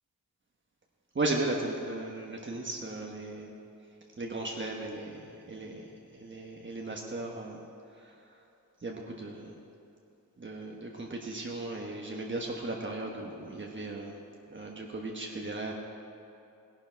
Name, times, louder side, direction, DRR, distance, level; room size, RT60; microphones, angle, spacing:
voice 1, 1.1-3.5 4.2-5.9 6.2-7.6 8.0-8.1 8.8-9.5 10.4-14.2 14.5-15.7, right 2 dB, 35° right, -1 dB, 1.2 m, -36 dB
18.5 x 11.5 x 4.6 m, 2.7 s
wide cardioid pair, 120°, 33 cm